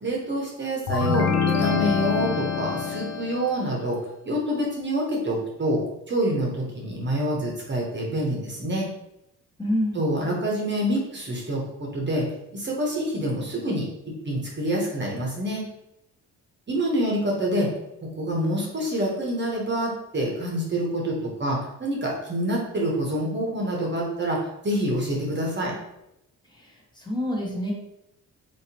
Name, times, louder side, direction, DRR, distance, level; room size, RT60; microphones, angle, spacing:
voice 1, 0.0-8.9 9.9-12.3 12.5-13.9 14.2-15.6 16.7-17.7 18.0-25.8, right 1 dB, 30° right, -2 dB, 0.9 m, -27 dB
sound 1, 0.9-3.7, left 6 dB, 50° left, 0.5 m, -25 dB
voice 2, 9.6-10.0 26.5-27.7, equal, 10° left, -3 dB, 1.0 m, -28 dB
3.1 x 2.8 x 2.8 m, 0.84 s
cardioid pair, 75°, 35 cm